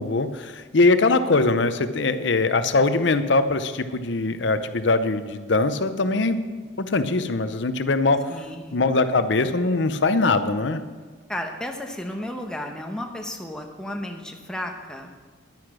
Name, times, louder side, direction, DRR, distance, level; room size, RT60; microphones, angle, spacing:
voice 1, 0.0-6.4 6.8-8.3 8.7-10.8, left 3 dB, 65° left, 11 dB, 0.7 m, -22 dB
voice 2, 8.3-8.8 11.3-15.1, left 1 dB, 5° left, 2 dB, 1.0 m, -33 dB
11.0 x 9.6 x 6.1 m, 1.4 s
head